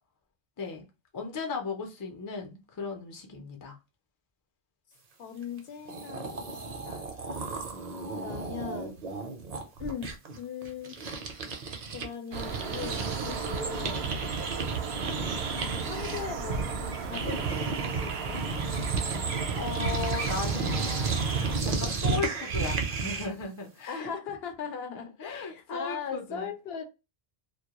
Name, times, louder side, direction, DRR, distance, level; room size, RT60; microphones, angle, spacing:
voice 1, 1.1-3.7 19.5-21.4 21.6-24.1 24.9-26.5, left 4 dB, 30° left, 0.4 m, -36 dB
voice 2, 5.2-7.1 8.2-9.1 9.8-11.0 11.9-14.2 15.4-16.6 17.0-18.5 23.9-26.8, left 7 dB, 75° left, 0.8 m, -39 dB
sound 1, 5.6-5.7 5.9-12.1 12.3-23.4, right 4 dB, 50° right, 0.6 m, -33 dB
sound 2, 12.3-21.6, right 5 dB, 75° right, 0.8 m, -34 dB
2.2 x 2.2 x 2.9 m
omnidirectional pair, 1.1 m